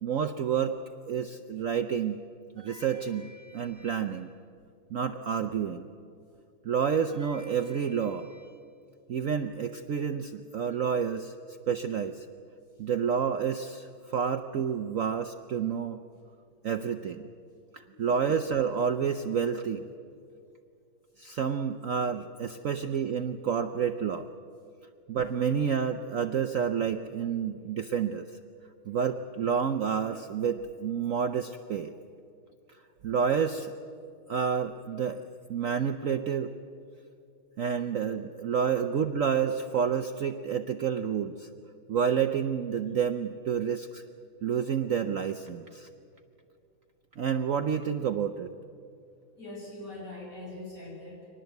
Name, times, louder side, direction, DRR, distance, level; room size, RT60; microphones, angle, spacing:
voice 1, 0.0-0.8 1.1-2.2 2.6-4.3 4.9-5.9 6.6-8.5 9.1-12.3 12.8-16.0 16.6-17.3 17.7-19.9 21.2-24.3 25.1-28.4 28.9-31.9 33.0-33.7 34.3-36.5 37.6-41.5 41.9-44.0 44.4-45.9 47.2-48.5, right 7 dB, 80° right, 7 dB, 0.7 m, -29 dB
voice 2, 49.3-51.3, left 2 dB, 40° left, -3 dB, 6.7 m, -42 dB
23.5 x 19.5 x 8.1 m, 2.4 s
omnidirectional pair, 2.3 m